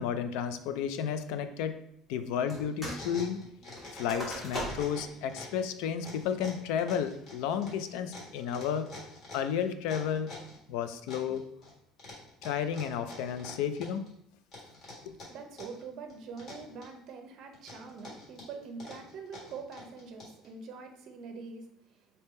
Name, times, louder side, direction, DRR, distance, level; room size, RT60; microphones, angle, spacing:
voice 1, 0.0-1.8 2.1-3.4 3.9-8.9 9.3-10.3 10.7-11.4 12.4-14.0 15.1-15.2, left 8 dB, 80° left, 10 dB, 0.3 m, -32 dB
sound 1, 2.5-4.2 4.5-5.6 6.0-10.6 11.1-11.7 12.0-14.1 14.5-15.8 16.1-17.1 17.5-20.5, left 2 dB, 35° left, 1.6 m, -47 dB
sound 2, 2.5-3.1 3.3-5.0 5.5-5.6 6.1-6.5 7.0-7.4, equal, 15° left, 1.2 m, -39 dB
voice 2, 15.1-22.0, right 5 dB, 45° right, 5 dB, 0.6 m, -44 dB
3.5 x 2.7 x 4.2 m, 0.72 s
cardioid pair, 165°, 0 cm